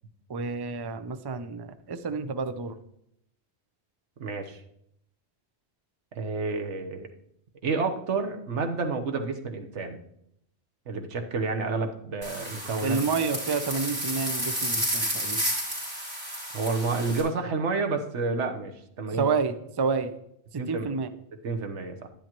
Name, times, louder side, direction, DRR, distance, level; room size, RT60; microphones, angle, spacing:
voice 1, 0.3-2.8 12.8-15.4 19.1-20.1 20.5-21.1, right 4 dB, 30° right, 10 dB, 0.5 m, -29 dB
voice 2, 4.2-4.6 6.1-7.1 7.6-10.0 10.9-13.0 16.5-19.2 20.6-21.0 21.4-22.1, right 4 dB, 90° right, 5 dB, 1.4 m, -30 dB
sound 1, 12.2-17.2, right 1 dB, 60° right, 4.7 m, -31 dB
11.0 x 10.5 x 3.0 m, 0.74 s
omnidirectional pair, 1.2 m